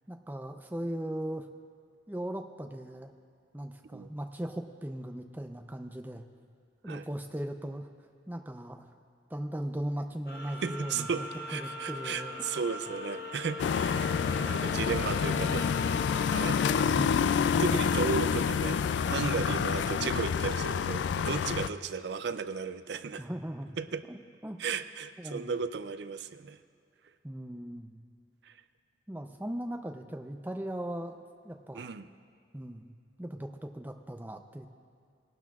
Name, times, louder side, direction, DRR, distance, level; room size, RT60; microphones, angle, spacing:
voice 1, 0.1-1.5 2.1-3.1 3.5-6.2 6.8-7.9 8.3-8.9 9.3-12.5 14.7-16.0 16.9-17.4 19.4-19.6 23.2-23.8 24.1-24.6 25.2-25.6 27.2-28.0 29.1-31.2 31.4-31.9 32.5-34.7, right 1 dB, 10° right, 5 dB, 0.5 m, -39 dB
sound 1, 10.3-16.9, left 3 dB, 55° left, 1.1 m, -40 dB
voice 2, 10.6-14.0 14.3-15.7 16.3-16.7 17.6-18.8 19.1-23.2 23.8-24.0 24.6-26.6 28.4-28.5 31.7-32.1, right 5 dB, 75° right, 12 dB, 0.4 m, -35 dB
sound 2, 13.6-21.7, left 6 dB, 85° left, 0.3 m, -28 dB
19.5 x 12.0 x 2.4 m, 2.4 s
head